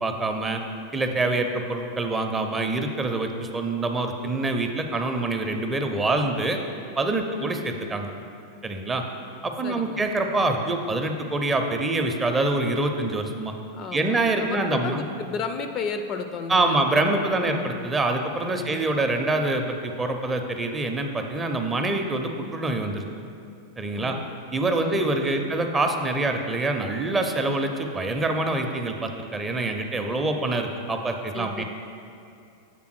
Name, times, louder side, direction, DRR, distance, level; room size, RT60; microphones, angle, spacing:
voice 1, 0.0-0.6 0.9-6.6 7.0-8.1 8.6-9.0 9.4-13.5 13.9-15.0 16.5-23.0 23.8-24.2 24.5-31.6, right 2 dB, 15° right, 4 dB, 0.5 m, -25 dB
voice 2, 9.6-10.0 13.7-17.6 18.5-18.8 23.9-24.3 24.8-24.9 25.4-25.6 31.3-31.6, left 5 dB, 35° left, 7 dB, 0.4 m, -34 dB
7.4 x 3.5 x 6.2 m, 2.6 s
figure-of-eight pair, 90°, 0 cm